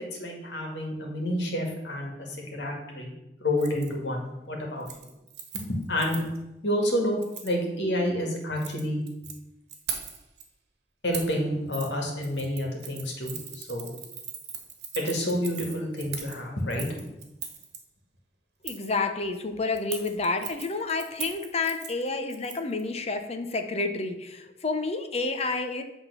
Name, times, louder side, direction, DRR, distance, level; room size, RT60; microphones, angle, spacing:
voice 1, 0.0-3.1 3.4-4.9 5.5-6.2 6.6-9.0 11.0-13.9 15.0-16.9, left 1 dB, 85° left, 1 dB, 2.1 m, -29 dB
Keys jangling, 3.6-3.9 4.2-4.5 4.8-6.4 7.2-7.5 8.4-9.3 9.7-10.4 11.1-11.4 11.7-11.9 12.2-17.8 18.6-18.9 19.8-22.8 23.1-23.2, right 7 dB, 65° right, 1.4 m, -39 dB
voice 2, 18.6-25.8, left 3 dB, 35° left, 6 dB, 0.8 m, -29 dB
8.6 x 3.8 x 6.8 m, 0.96 s
head